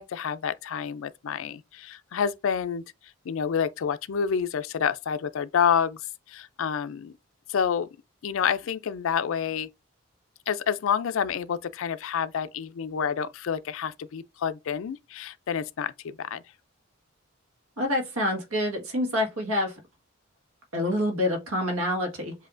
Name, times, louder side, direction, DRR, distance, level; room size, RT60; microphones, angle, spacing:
voice 1, 0.0-2.8 3.3-6.0 6.3-7.1 7.5-7.9 8.2-9.7 10.5-16.4, left 7 dB, 65° left, 0.4 m, -28 dB
voice 2, 17.8-19.8 20.7-22.3, left 1 dB, 90° right, 1.6 m, -27 dB
7.5 x 2.7 x 2.5 m
head